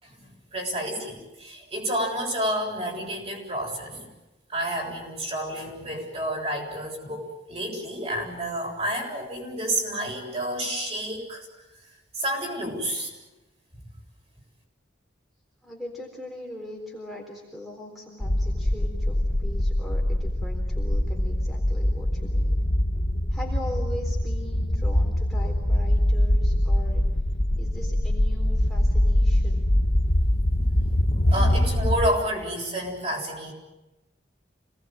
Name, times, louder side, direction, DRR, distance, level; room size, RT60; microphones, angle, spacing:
voice 1, 0.0-4.0 4.5-11.5 12.1-13.1 31.2-33.5, right 1 dB, 35° right, 0 dB, 7.4 m, -30 dB
voice 2, 15.6-22.6 23.3-27.0 27.6-29.7, left 1 dB, ahead, -1 dB, 4.0 m, -40 dB
sound 1, 18.2-32.1, left 1 dB, 45° left, 1.4 m, -23 dB
28.5 x 19.5 x 9.1 m, 1.0 s
head